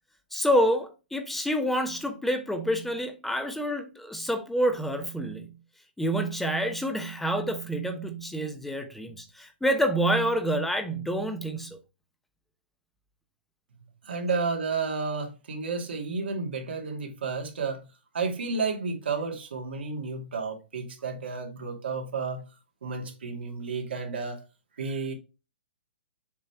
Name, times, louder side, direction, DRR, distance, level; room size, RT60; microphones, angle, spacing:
voice 1, 0.3-5.5 6.0-11.8, equal, 5° left, 1.0 m, -27 dB
voice 2, 14.0-17.8 18.1-22.4 22.8-24.4 24.8-25.1, right 4 dB, 80° right, 2.3 m, -31 dB
7.1 x 3.3 x 4.3 m
hypercardioid pair, 140°, 6 cm